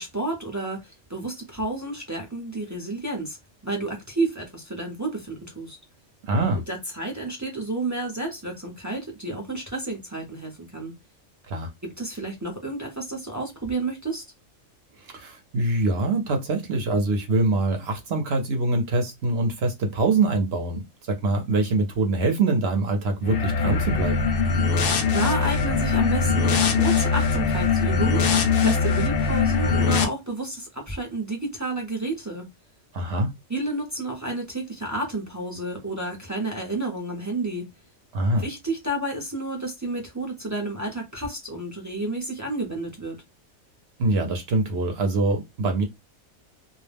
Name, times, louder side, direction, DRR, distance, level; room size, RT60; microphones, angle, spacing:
voice 1, 0.0-3.4 3.6-5.8 6.7-10.9 11.8-14.3 25.1-32.4 33.5-37.6 38.3-43.2, right 2 dB, 25° right, 0.4 m, -30 dB
voice 2, 6.2-6.6 11.5-11.7 15.0-24.3 32.9-33.3 38.1-38.4 44.0-45.8, right 2 dB, 60° right, 0.8 m, -24 dB
sound 1, 23.2-30.0, left 5 dB, 60° left, 0.6 m, -22 dB
2.3 x 2.1 x 3.3 m
omnidirectional pair, 1.4 m